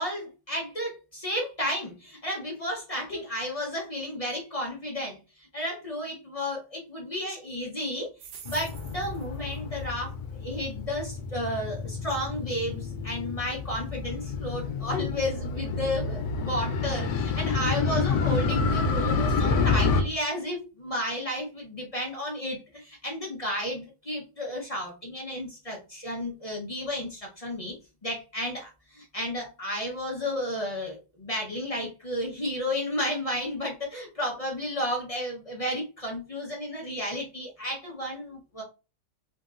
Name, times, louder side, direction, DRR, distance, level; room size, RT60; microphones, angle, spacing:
voice 1, 0.0-8.1 8.4-10.1 10.4-27.7 28.0-38.6, equal, 35° left, -2 dB, 0.5 m, -32 dB
sound 1, 8.2-10.0 11.0-11.2 12.2-12.3 12.6-12.7 13.2-13.3 13.8-14.0, right 7 dB, 85° right, 1.3 m, -49 dB
Motorcycle, 8.5-20.0, left 4 dB, 80° left, 1.3 m, -28 dB
3.7 x 2.8 x 2.4 m, 0.30 s
omnidirectional pair, 1.8 m